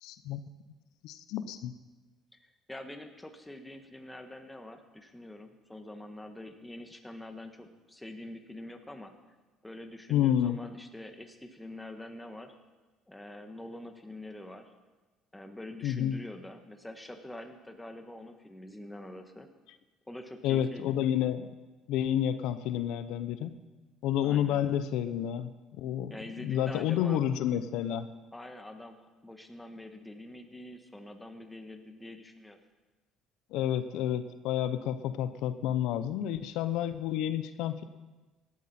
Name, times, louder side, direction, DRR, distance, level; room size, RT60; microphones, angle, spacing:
voice 1, 0.0-0.4 1.0-1.7 10.1-10.6 15.8-16.2 20.4-21.5 21.9-23.5 24.0-25.5 25.8-26.1 26.4-28.1 33.5-37.8, left 10 dB, 80° left, 11 dB, 0.7 m, -30 dB
voice 2, 2.4-9.1 9.6-12.5 13.1-14.7 15.3-19.5 20.1-20.9 24.2-24.6 26.1-27.2 28.3-32.6, left 1 dB, 10° left, 6 dB, 1.5 m, -45 dB
17.0 x 12.5 x 4.3 m, 1.2 s
cardioid pair, 115°, 0 cm